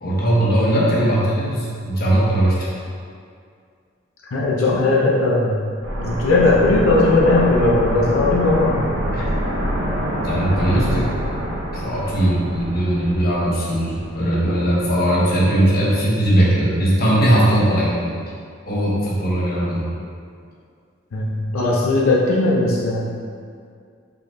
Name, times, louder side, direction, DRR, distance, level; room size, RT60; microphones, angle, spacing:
voice 1, 0.0-2.8 9.1-9.2 10.2-11.1 11.7-18.1 18.7-19.9, right 1 dB, 50° left, -6 dB, 1.0 m, -19 dB
voice 2, 4.3-5.6 6.0-8.8 21.1-23.0, left 2 dB, 90° left, -4 dB, 0.6 m, -18 dB
sound 1, 5.8-14.5 14.8-14.9, equal, 65° right, 0.7 m, -26 dB
5.6 x 3.9 x 2.2 m, 2.2 s
head